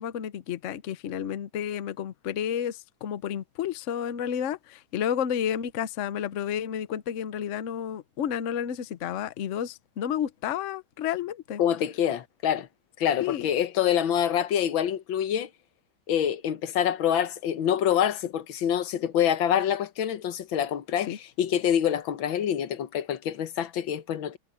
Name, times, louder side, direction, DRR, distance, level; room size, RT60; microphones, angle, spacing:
voice 1, 0.0-11.6 13.2-13.5 21.1-21.2, left 9 dB, 55° left, 0.9 m, -31 dB
voice 2, 11.6-12.7 13.0-15.5 16.1-24.4, left 9 dB, 85° left, 1.8 m, -26 dB
omnidirectional pair, 2.1 m